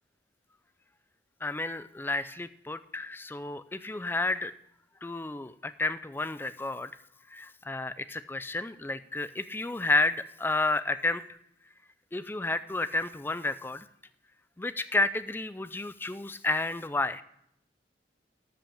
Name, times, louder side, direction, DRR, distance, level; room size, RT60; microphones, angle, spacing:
voice 1, 1.4-4.5 5.0-6.9 7.3-11.2 12.1-13.9 14.6-17.2, left 2 dB, 10° left, 13 dB, 0.4 m, -31 dB
13.0 x 5.7 x 7.2 m, 0.74 s
head